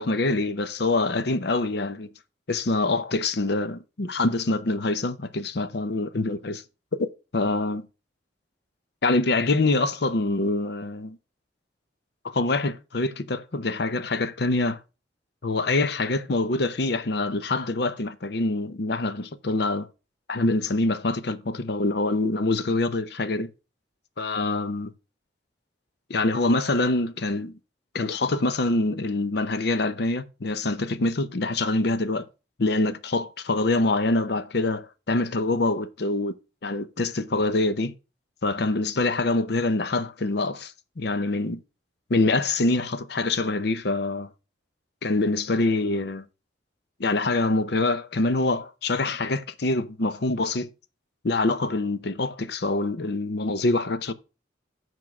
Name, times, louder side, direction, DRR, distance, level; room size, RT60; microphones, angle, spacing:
voice 1, 0.0-2.1 2.5-6.6 7.0-7.1 7.3-7.9 9.0-11.2 12.2-14.8 15.4-19.9 20.3-23.5 24.2-24.9 26.1-27.5 27.9-32.3 32.6-36.3 36.6-37.9 38.4-41.6 42.1-44.3 45.0-46.2 47.0-50.7 51.2-54.1, left 2 dB, 65° left, 0.7 m, -25 dB
8.4 x 4.6 x 5.9 m
head